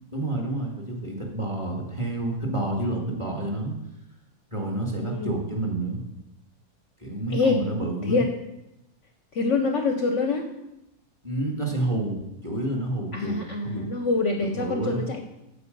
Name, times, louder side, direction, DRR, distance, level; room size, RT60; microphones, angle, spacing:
voice 1, 0.1-3.7 4.5-6.0 7.0-8.2 11.2-13.4 13.6-13.9 14.5-15.1, right 2 dB, 20° right, 0 dB, 1.9 m, -29 dB
voice 2, 4.9-5.4 7.3-7.6 8.0-8.3 9.3-10.5 13.1-15.2, left 3 dB, 55° left, 5 dB, 1.0 m, -25 dB
14.0 x 4.9 x 5.3 m, 0.90 s
omnidirectional pair, 1.7 m